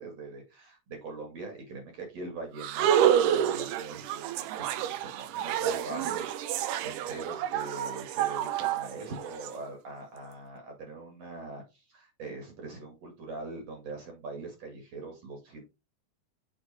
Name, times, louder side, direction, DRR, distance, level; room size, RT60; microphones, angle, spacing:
voice 1, 0.0-15.6, right 3 dB, 55° right, 3 dB, 2.6 m, -42 dB
sound 1, 2.6-9.5, right 10 dB, 80° right, 2.0 m, -28 dB
6.9 x 4.2 x 4.0 m, 0.26 s
omnidirectional pair, 4.0 m